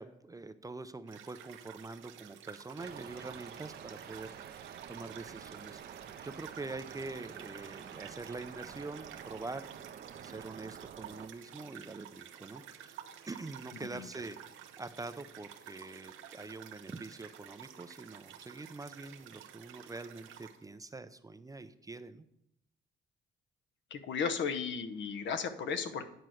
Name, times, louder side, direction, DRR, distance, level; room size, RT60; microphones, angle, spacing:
voice 1, 0.0-9.7 10.2-13.0 13.3-22.3, right 3 dB, 15° right, 11 dB, 0.5 m, -45 dB
sound 1, 1.1-20.6, right 10 dB, 85° right, 0.8 m, -52 dB
sound 2, 2.8-11.3, right 8 dB, 55° right, 0.7 m, -49 dB
voice 2, 23.9-26.0, left 6 dB, 70° left, 9 dB, 0.9 m, -35 dB
9.5 x 4.5 x 6.3 m, 0.79 s
cardioid pair, 90°, 20 cm